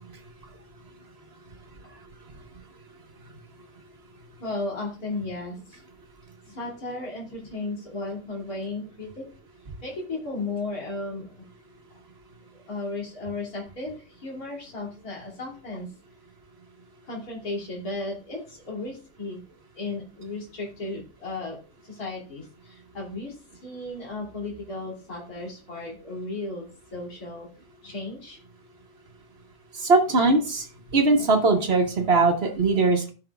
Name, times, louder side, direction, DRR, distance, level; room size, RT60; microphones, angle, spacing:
voice 1, 4.4-5.8 6.4-9.2 9.8-11.4 12.5-15.9 17.0-19.4 19.8-21.6 21.8-26.7 26.9-27.5 27.8-28.4, left 2 dB, 60° left, -3 dB, 3.3 m, -35 dB
voice 2, 29.7-33.1, right 3 dB, 40° right, 4 dB, 1.4 m, -21 dB
15.5 x 5.9 x 2.4 m, 0.35 s
omnidirectional pair, 1.8 m